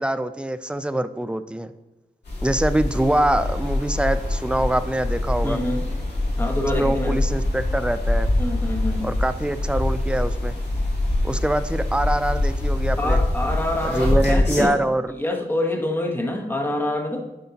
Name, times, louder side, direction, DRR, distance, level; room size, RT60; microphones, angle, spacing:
voice 1, 0.0-1.7 2.4-5.6 6.8-8.3 9.0-10.5 11.2-13.2 13.8-15.1, right 1 dB, 5° right, 11 dB, 0.4 m, -24 dB
sound 1, 2.2-14.7, left 1 dB, 80° left, 2.1 m, -24 dB
sound 2, 2.8-14.1, left 1 dB, 65° left, 1.8 m, -46 dB
voice 2, 5.4-5.9 6.4-7.2 8.4-9.1 13.0-14.8 15.1-17.3, left 1 dB, 10° left, 3 dB, 1.0 m, -26 dB
9.4 x 5.2 x 2.9 m, 1.1 s
wide cardioid pair, 90°, 18 cm